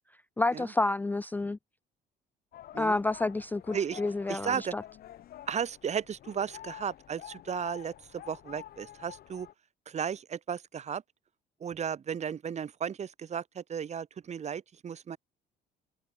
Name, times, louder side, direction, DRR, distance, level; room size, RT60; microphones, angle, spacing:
voice 1, 0.4-1.6 2.8-4.8, left 2 dB, 10° left, 0.4 m, -29 dB
sound 1, 2.5-9.5, left 12 dB, 65° left, 3.5 m, -48 dB
voice 2, 4.3-4.7 5.5-9.5 9.8-11.0 11.6-15.2, right 7 dB, 40° right, 3.3 m, -35 dB
open air
cardioid pair, 110°, 17 cm